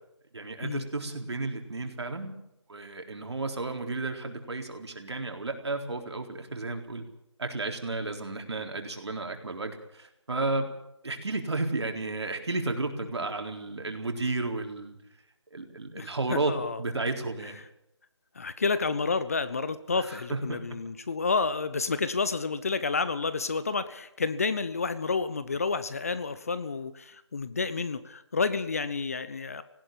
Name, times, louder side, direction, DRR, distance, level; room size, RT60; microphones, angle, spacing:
voice 1, 0.3-2.4 2.7-7.0 7.4-10.7 11.0-15.0 15.5-17.6 19.9-20.8, right 3 dB, 65° right, 4 dB, 4.0 m, -33 dB
voice 2, 15.9-16.8 18.4-29.6, left 4 dB, 30° left, 14 dB, 0.8 m, -30 dB
18.5 x 16.0 x 9.2 m, 0.79 s
figure-of-eight pair, 170°, 15 cm